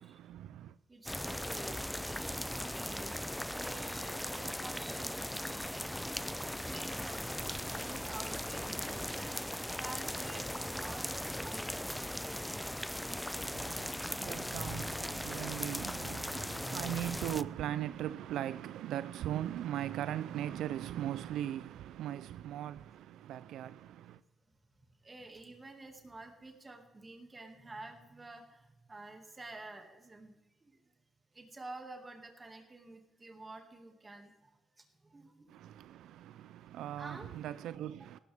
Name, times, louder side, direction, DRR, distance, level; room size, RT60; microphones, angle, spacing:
voice 1, 0.0-0.7 13.3-24.2 35.5-38.2, right 11 dB, 80° right, 0.3 m, -39 dB
voice 2, 0.9-5.9 6.7-9.4 9.8-12.8 25.0-28.6 28.9-30.3 30.6-30.8 31.3-34.5 34.8-35.5 37.0-37.3 38.0-38.1, right 2 dB, 25° right, 2.1 m, -50 dB
sound 1, 1.1-17.4, left 1 dB, 5° left, 0.3 m, -38 dB
17.0 x 12.5 x 3.5 m
cardioid pair, 90°, 0 cm